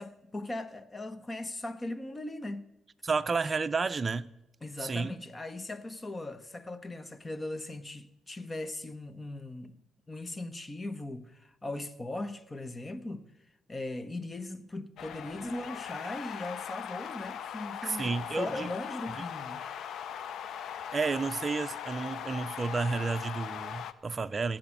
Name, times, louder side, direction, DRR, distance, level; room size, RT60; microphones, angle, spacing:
voice 1, 0.0-2.7 4.6-9.8 10.1-13.3 13.7-19.6, left 2 dB, 25° left, 1.0 m, -39 dB
voice 2, 3.0-4.3 4.8-5.1 17.8-18.7 20.9-24.6, right 4 dB, 30° right, 0.6 m, -31 dB
sound 1, 15.0-23.9, left 8 dB, 70° left, 0.6 m, -40 dB
16.5 x 7.8 x 7.5 m
cardioid pair, 90°, 0 cm